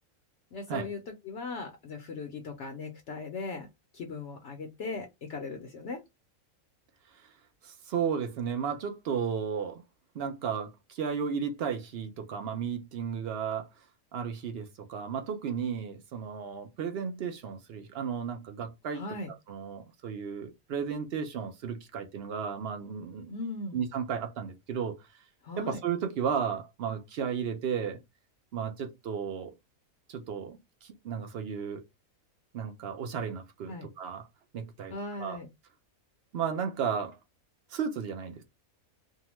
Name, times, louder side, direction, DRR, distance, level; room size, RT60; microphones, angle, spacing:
voice 1, 0.5-3.7 3.9-6.0 18.9-19.3 23.3-23.8 25.4-25.8 33.7-33.9 34.9-35.5, left 3 dB, 65° left, 0.8 m, -38 dB
voice 2, 7.6-9.8 10.1-13.7 14.1-19.0 19.5-23.3 23.7-25.0 25.6-28.0 28.5-29.5 30.1-31.8 32.5-34.3 34.5-35.4 36.3-37.2 37.7-38.4, right 7 dB, 65° right, 0.6 m, -34 dB
2.7 x 2.1 x 2.9 m
omnidirectional pair, 1.5 m